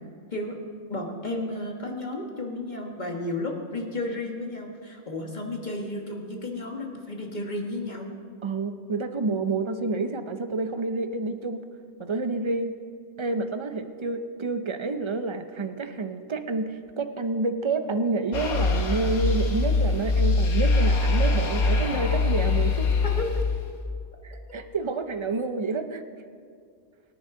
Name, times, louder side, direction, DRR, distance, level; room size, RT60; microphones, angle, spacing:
voice 1, 0.9-8.1 23.2-23.3, left 2 dB, 35° left, 1 dB, 1.7 m, -33 dB
voice 2, 8.4-11.7 12.0-12.7 13.2-23.0 24.2-26.0, right 3 dB, 40° right, 8 dB, 0.4 m, -29 dB
sound 1, 18.3-23.8, left 3 dB, 85° left, 1.6 m, -23 dB
23.0 x 10.0 x 3.8 m, 2.3 s
omnidirectional pair, 1.5 m